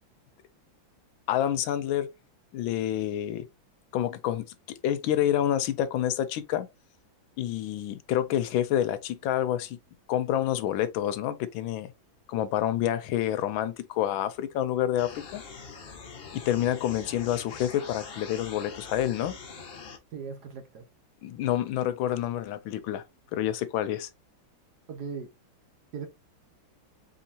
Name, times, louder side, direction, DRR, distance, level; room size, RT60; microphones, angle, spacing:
voice 1, 1.3-2.1 2.5-3.4 3.9-6.7 7.4-9.8 10.1-11.9 12.3-15.4 16.3-19.3 21.2-23.0 23.3-24.1, left 11 dB, 80° left, 1.3 m, -28 dB
sound 1, 15.0-20.0, left 5 dB, 45° left, 0.7 m, -43 dB
voice 2, 20.1-20.9 24.9-25.3 25.9-26.1, right 6 dB, 60° right, 1.3 m, -38 dB
4.3 x 3.8 x 2.7 m
omnidirectional pair, 2.2 m